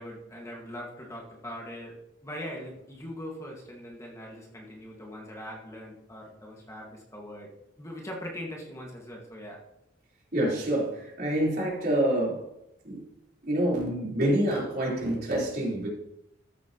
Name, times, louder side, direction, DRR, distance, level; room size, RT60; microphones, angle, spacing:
voice 1, 0.0-1.9 2.2-7.5 7.8-9.6, equal, 15° left, -2 dB, 1.7 m, -41 dB
voice 2, 10.3-12.4 12.8-13.1 13.4-15.9, right 1 dB, 50° right, -5 dB, 3.9 m, -27 dB
13.5 x 8.7 x 3.0 m, 0.83 s
head